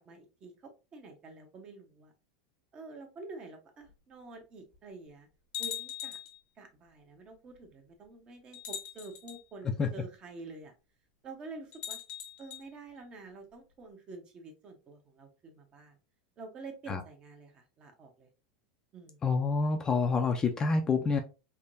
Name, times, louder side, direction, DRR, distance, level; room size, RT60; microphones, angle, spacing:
voice 1, 0.0-2.1 2.7-5.3 5.6-6.2 6.6-10.7 11.2-12.0 12.4-16.0 16.4-18.3 18.9-19.2, right 3 dB, 35° right, 5 dB, 0.9 m, -48 dB
sound 1, 3.9-4.0 4.7-4.8 5.5-6.4 7.5-7.6 8.5-9.4 11.7-12.6, left 10 dB, 50° left, 0.8 m, -40 dB
voice 2, 19.2-21.2, left 4 dB, 25° left, 6 dB, 0.5 m, -27 dB
3.5 x 2.2 x 2.5 m, 0.30 s
hypercardioid pair, 110°, 3 cm